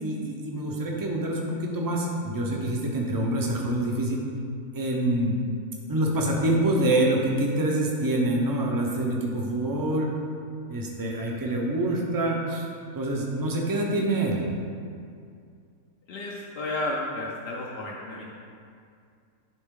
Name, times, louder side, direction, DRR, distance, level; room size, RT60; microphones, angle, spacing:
voice 1, 0.0-4.2 4.7-5.4 5.9-10.1 10.7-12.7 12.9-14.4, right 1 dB, 25° right, -1 dB, 0.4 m, -26 dB
voice 2, 16.1-18.3, left 2 dB, 55° left, -3 dB, 0.7 m, -32 dB
10.0 x 3.5 x 3.7 m, 2.3 s
omnidirectional pair, 1.6 m